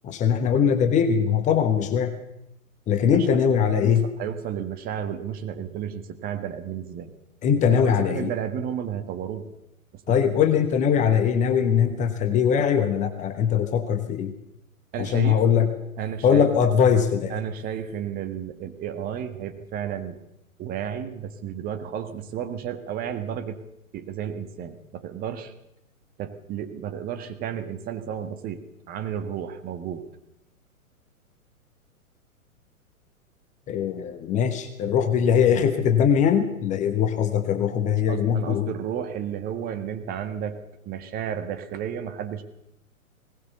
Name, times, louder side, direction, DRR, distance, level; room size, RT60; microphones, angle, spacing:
voice 1, 0.0-2.1 2.9-4.1 7.4-8.3 10.1-14.3 15.0-15.7 16.2-17.3 33.7-38.7, left 7 dB, 15° left, 8 dB, 1.1 m, -21 dB
voice 2, 3.7-7.1 7.7-9.5 10.1-10.2 14.9-15.4 16.0-16.5 17.3-20.2 20.6-23.6 23.9-25.5 26.2-28.6 28.9-30.0 37.8-40.6 40.8-42.4, right 9 dB, 20° right, 7 dB, 1.6 m, -32 dB
20.0 x 18.5 x 6.9 m, 0.83 s
figure-of-eight pair, 115°, 43 cm